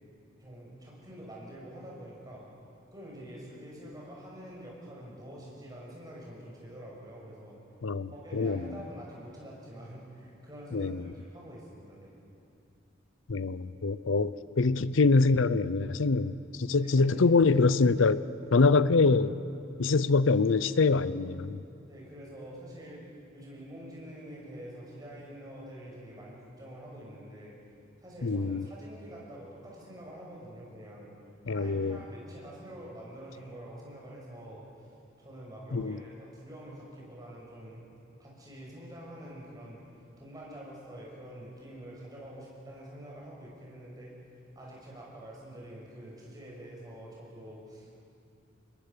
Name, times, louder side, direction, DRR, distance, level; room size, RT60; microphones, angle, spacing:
voice 1, 0.4-2.4 2.9-7.6 8.1-12.1 16.8-17.3 21.9-23.0 23.3-27.5 28.0-31.1 31.4-34.9 35.2-37.9 38.2-44.1 44.5-48.0, right 1 dB, 20° right, -4 dB, 6.5 m, -46 dB
voice 2, 7.8-8.8 10.7-11.1 13.3-18.3 18.5-19.3 19.8-21.6 28.2-28.7 31.5-32.0 35.7-36.0, left 3 dB, 75° left, 16 dB, 0.6 m, -25 dB
26.0 x 21.0 x 6.9 m, 2.6 s
head